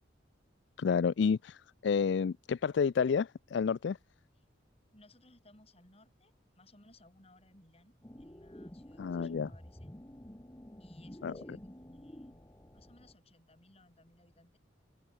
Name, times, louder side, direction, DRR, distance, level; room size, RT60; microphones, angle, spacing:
voice 1, 0.8-4.0 9.0-9.5 11.2-11.3, left 6 dB, 65° left, 0.4 m, -30 dB
voice 2, 4.9-9.9 10.8-14.6, left 2 dB, 30° left, 5.0 m, -62 dB
sound 1, 8.0-13.1, equal, 15° left, 1.2 m, -50 dB
head